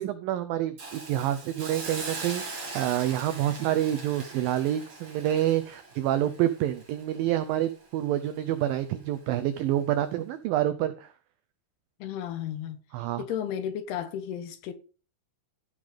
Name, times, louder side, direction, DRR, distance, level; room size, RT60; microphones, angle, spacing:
voice 1, 0.0-11.1 12.9-13.2, right 12 dB, 90° right, 2.0 m, -28 dB
Hiss, 0.8-7.8 8.2-8.4, right 3 dB, 30° right, 3.0 m, -41 dB
voice 2, 12.0-12.8 13.2-14.7, left 9 dB, 75° left, 2.9 m, -33 dB
15.5 x 5.4 x 5.0 m
omnidirectional pair, 4.9 m